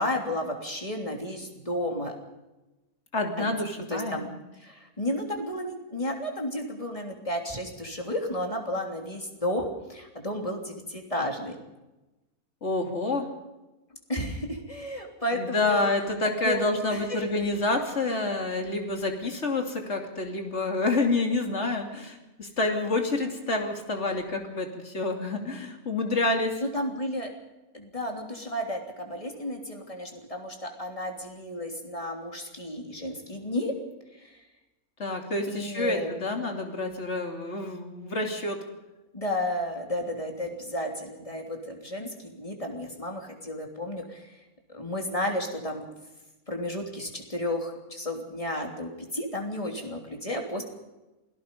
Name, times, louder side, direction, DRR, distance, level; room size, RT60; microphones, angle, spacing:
voice 1, 0.0-2.1 3.4-3.5 3.9-4.3 4.6-11.6 14.1-15.8 16.4-17.2 26.6-27.3 27.7-33.7 34.2-34.4 35.5-36.2 39.1-44.4 44.7-45.8 46.5-50.6, left 1 dB, 25° left, 2 dB, 3.3 m, -32 dB
voice 2, 3.1-4.3 12.6-13.3 15.3-26.6 35.0-38.6, left 2 dB, 50° left, 3 dB, 3.1 m, -28 dB
27.5 x 18.0 x 5.4 m, 1.0 s
omnidirectional pair, 1.5 m